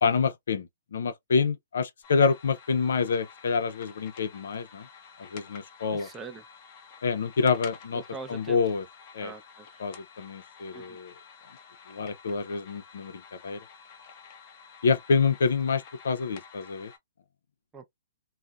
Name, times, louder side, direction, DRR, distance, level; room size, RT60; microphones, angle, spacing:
voice 1, 0.0-4.9 5.2-6.1 7.0-8.0 8.3-8.8 9.1-9.3 9.8-11.1 11.9-13.6 14.8-16.9, left 5 dB, 70° left, 0.4 m, -27 dB
sound 1, 2.0-17.0, left 6 dB, 45° left, 0.7 m, -50 dB
voice 2, 5.9-6.4 7.9-8.6 9.2-9.8 10.7-11.0 17.7-17.9, right 4 dB, 15° right, 0.4 m, -42 dB
2.6 x 2.0 x 2.3 m
figure-of-eight pair, 115°, 0 cm